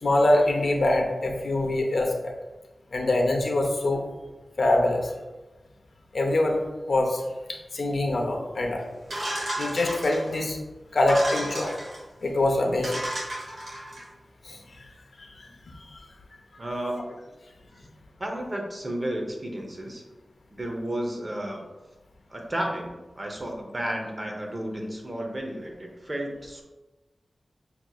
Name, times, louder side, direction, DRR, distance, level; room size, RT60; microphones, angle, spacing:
voice 1, 0.0-2.3 2.9-4.0 4.6-5.1 6.1-6.6 6.9-7.2 7.5-8.8 9.6-10.6 10.9-11.8 12.2-13.1 14.4-14.9 15.2-15.5 15.9-16.0, left 1 dB, 60° left, 1 dB, 0.6 m, -24 dB
sound 1, 9.1-10.4 11.0-12.0 12.5-12.6 12.8-14.0, right 1 dB, 70° right, 1.4 m, -33 dB
voice 2, 16.6-17.1 18.2-20.0 20.5-21.6 22.3-26.6, right 1 dB, 30° right, 1 dB, 0.7 m, -32 dB
6.0 x 2.8 x 2.3 m, 1.1 s
wide cardioid pair, 100°, 0 cm